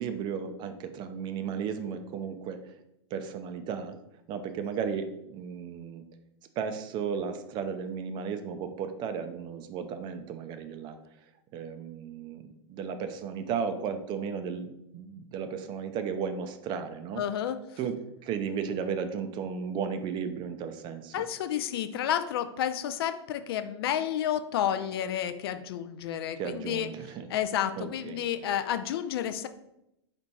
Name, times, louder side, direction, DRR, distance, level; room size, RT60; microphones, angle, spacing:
voice 1, 0.0-2.6 3.1-4.0 4.3-6.0 6.6-11.0 11.5-12.4 12.7-17.2 17.8-18.0 18.2-21.1 26.4-27.3 27.8-28.5, right 6 dB, 30° right, 8 dB, 0.5 m, -34 dB
voice 2, 17.2-17.6 21.1-26.9 27.3-29.5, left 10 dB, 55° left, 10 dB, 0.4 m, -30 dB
4.4 x 2.5 x 4.5 m, 0.84 s
figure-of-eight pair, 100°, 15 cm